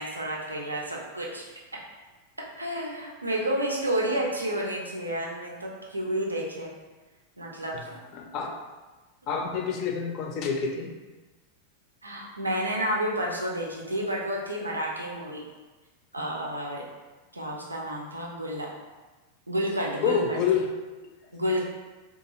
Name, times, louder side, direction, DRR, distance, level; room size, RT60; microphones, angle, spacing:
voice 1, 0.0-1.5 2.6-6.7 7.4-8.0 12.0-15.4 16.1-16.8 17.3-18.7 19.5-20.4 21.3-21.6, right 1 dB, 80° right, -2 dB, 0.4 m, -30 dB
voice 2, 8.1-8.5 9.3-10.9 20.0-20.7, left 6 dB, 40° left, 2 dB, 0.4 m, -27 dB
2.3 x 2.3 x 2.9 m, 1.2 s
figure-of-eight pair, 90°, 0 cm